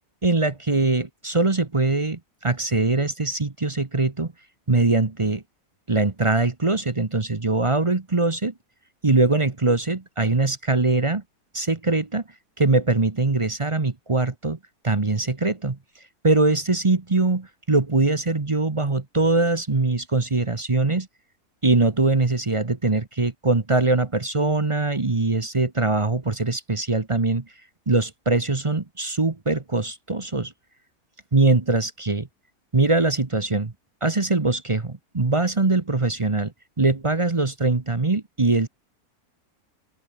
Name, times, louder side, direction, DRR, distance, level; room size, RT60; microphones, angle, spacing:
voice 1, 0.2-4.3 4.7-5.4 5.9-8.5 9.0-11.2 11.5-12.2 12.6-14.6 14.8-15.8 16.2-21.1 21.6-27.4 27.9-30.5 31.3-32.3 32.7-33.7 34.0-38.7, right 3 dB, 25° right, 1.0 m, -22 dB
open air
omnidirectional pair, 1.6 m